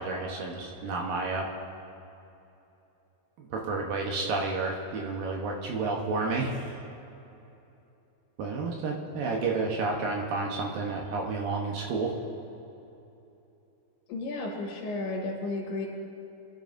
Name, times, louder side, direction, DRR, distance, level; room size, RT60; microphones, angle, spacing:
voice 1, 0.0-1.5 3.4-6.8 8.4-12.2, right 3 dB, 70° right, -1 dB, 2.6 m, -31 dB
voice 2, 14.1-15.9, left 2 dB, 90° left, -3 dB, 3.7 m, -33 dB
24.0 x 11.0 x 2.6 m, 2.9 s
omnidirectional pair, 4.5 m